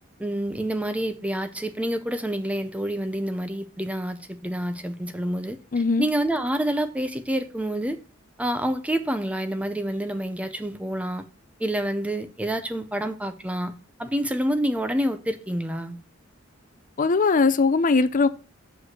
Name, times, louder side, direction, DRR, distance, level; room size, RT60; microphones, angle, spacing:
voice 1, 0.2-5.6 6.0-8.0 8.4-11.3 11.6-16.0, right 1 dB, 5° right, 0.5 m, -28 dB
voice 2, 5.7-6.1 17.0-18.3, left 4 dB, 40° left, 0.5 m, -20 dB
6.0 x 5.3 x 5.9 m
head